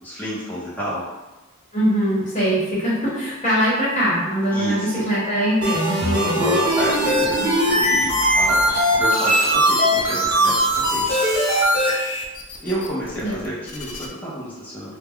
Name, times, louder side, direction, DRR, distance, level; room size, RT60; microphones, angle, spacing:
voice 1, 0.0-1.1 4.5-5.1 6.1-11.2 12.6-14.9, equal, 10° left, -8 dB, 0.5 m, -29 dB
voice 2, 1.7-6.3 7.4-7.5 13.2-13.3, equal, 35° left, -8 dB, 1.1 m, -22 dB
sound 1, 3.2-9.3, right 3 dB, 60° right, 0.5 m, -31 dB
sound 2, 5.6-11.9, equal, 10° right, 1.1 m, -19 dB
sound 3, 6.6-8.8 9.1-14.1, left 3 dB, 80° left, 0.4 m, -33 dB
2.2 x 2.1 x 3.5 m, 1.1 s
head